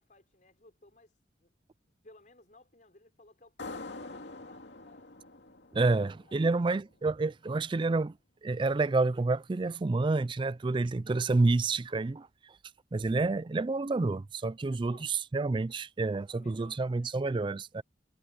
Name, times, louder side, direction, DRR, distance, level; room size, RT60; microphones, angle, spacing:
voice 1, 0.0-1.5 1.8-5.1 5.7-6.0 6.3-6.6 14.6-15.1 16.3-17.2, left 2 dB, 45° left, 4.9 m, -59 dB
sound 1, 3.6-6.9, left 3 dB, 70° left, 2.4 m, -45 dB
voice 2, 5.7-8.2 8.4-12.5 12.9-17.8, right 3 dB, 25° right, 0.4 m, -29 dB
head